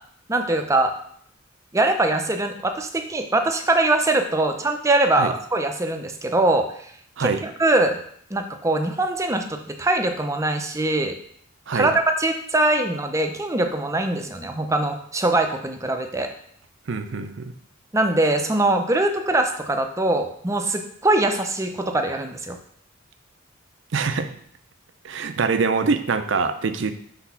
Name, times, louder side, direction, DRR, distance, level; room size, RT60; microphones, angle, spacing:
voice 1, 0.3-1.0 1.7-6.7 7.2-8.0 8.3-11.1 11.7-16.3 17.9-22.6, right 2 dB, 15° right, 5 dB, 0.5 m, -22 dB
voice 2, 16.9-17.5 23.9-24.3 25.0-26.9, right 4 dB, 65° right, 9 dB, 0.5 m, -24 dB
6.0 x 3.4 x 5.7 m, 0.65 s
head